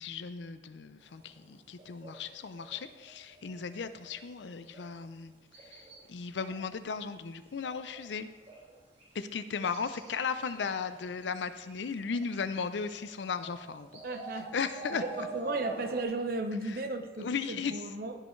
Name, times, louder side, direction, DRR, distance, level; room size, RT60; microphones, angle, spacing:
voice 1, 0.0-5.3 5.6-8.3 9.1-14.0 14.5-15.0 16.7-16.8 17.2-17.8, left 5 dB, 75° left, 12 dB, 0.5 m, -36 dB
sound 1, 1.0-3.7 4.0-5.1 5.5-6.1 6.4-7.2 7.5-8.2 8.4-9.2 9.4-12.4 12.9-16.0, right 2 dB, 35° right, 2.9 m, -47 dB
voice 2, 14.0-14.5 14.9-18.2, right 2 dB, 55° right, 6 dB, 0.8 m, -35 dB
14.5 x 5.5 x 3.2 m, 1.3 s
head